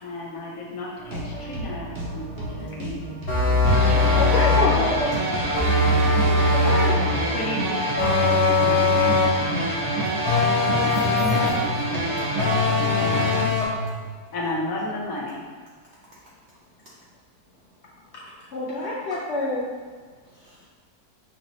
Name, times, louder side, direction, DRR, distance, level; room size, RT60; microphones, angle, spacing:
voice 1, 0.0-2.9 4.0-5.0 6.7-7.1 7.3-9.4 12.9-13.3 14.3-15.6, left 2 dB, 60° left, -3 dB, 1.2 m, -32 dB
sound 1, 1.0-6.5, right 1 dB, 45° right, 1.0 m, -34 dB
voice 2, 3.3-3.9 4.2-5.1 6.5-7.1 9.6-9.7 18.1-18.3 18.5-19.7, left 2 dB, 90° left, -5 dB, 0.6 m, -27 dB
sound 2, 3.3-4.8 5.5-7.1 8.0-9.4 10.3-11.7 12.4-13.8, left 3 dB, 35° left, 0.6 m, -21 dB
sound 3, 3.6-13.4, right 2 dB, 20° right, 0.5 m, -26 dB
voice 3, 10.6-12.5 20.3-20.6, right 3 dB, 70° right, -5 dB, 0.6 m, -41 dB
5.8 x 2.8 x 2.7 m, 1.5 s
omnidirectional pair, 1.7 m